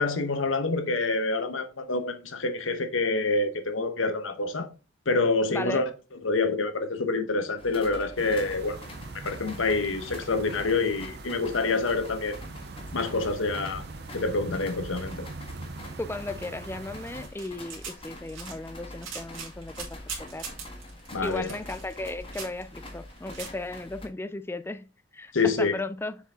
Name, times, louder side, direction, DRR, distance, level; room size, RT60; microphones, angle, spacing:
voice 1, 0.0-4.7 5.1-5.9 6.2-8.8 9.2-12.4 12.9-13.8 14.1-15.3 21.1-21.5 25.3-25.7, left 3 dB, 80° left, 1.0 m, -27 dB
voice 2, 5.5-5.9 16.0-20.5 21.2-24.9 25.1-26.2, left 2 dB, 10° left, 0.4 m, -36 dB
sound 1, 7.6-24.1, left 1 dB, 30° left, 1.5 m, -45 dB
sound 2, 8.2-17.3, right 3 dB, 55° right, 0.5 m, -42 dB
sound 3, 17.1-23.5, right 5 dB, 75° right, 2.7 m, -41 dB
6.9 x 4.9 x 3.6 m
head